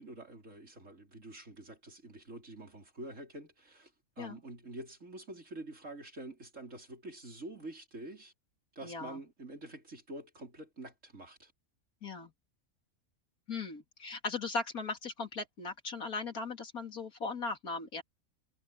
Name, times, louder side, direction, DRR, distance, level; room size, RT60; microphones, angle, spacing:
voice 1, 0.0-3.9 4.2-8.3 8.7-11.5, right 2 dB, 60° right, 5.0 m, -47 dB
voice 2, 8.8-9.2 12.0-12.3 13.5-18.0, left 4 dB, 85° left, 3.3 m, -38 dB
omnidirectional pair, 1.5 m